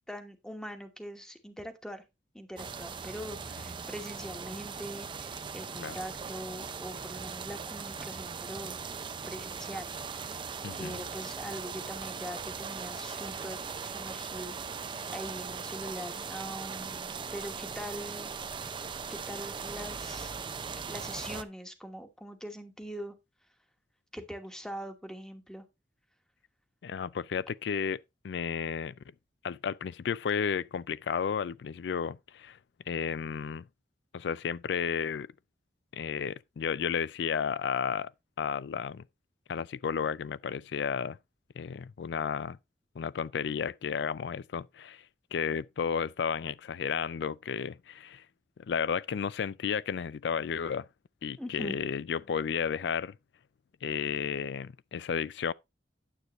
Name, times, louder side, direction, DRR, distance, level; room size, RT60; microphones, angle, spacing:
voice 1, 0.1-2.0 2.3-8.8 9.3-18.3 19.1-20.3 20.9-23.1 24.1-25.7 51.4-51.8, equal, 5° left, 1.2 m, -42 dB
sound 1, 2.6-21.4, right 5 dB, 30° right, 0.5 m, -39 dB
voice 2, 10.6-11.0 26.8-29.0 29.4-32.6 32.9-33.7 34.1-35.3 35.9-38.1 38.4-39.0 39.5-41.2 41.6-42.6 43.0-45.0 45.3-48.2 48.6-50.9 51.2-53.2 53.8-55.5, left 7 dB, 70° left, 0.4 m, -33 dB
9.3 x 8.0 x 3.0 m
head